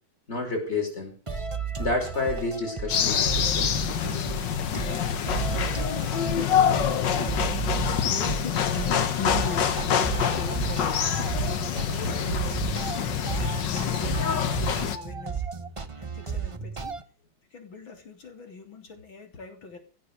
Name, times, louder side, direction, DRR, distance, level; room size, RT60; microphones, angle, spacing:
voice 1, 0.3-1.1 1.8-3.8, left 2 dB, 35° left, 5.5 m, -30 dB
sound 1, 1.3-17.0, right 5 dB, 25° right, 0.7 m, -33 dB
sound 2, 2.9-15.0, left 8 dB, 65° left, 1.8 m, -26 dB
voice 2, 6.2-7.4 8.1-9.8 10.2-11.4 11.6-13.2 13.6-15.4 16.0-17.0 17.5-19.8, left 4 dB, 90° left, 4.0 m, -40 dB
16.0 x 7.2 x 8.1 m
omnidirectional pair, 2.1 m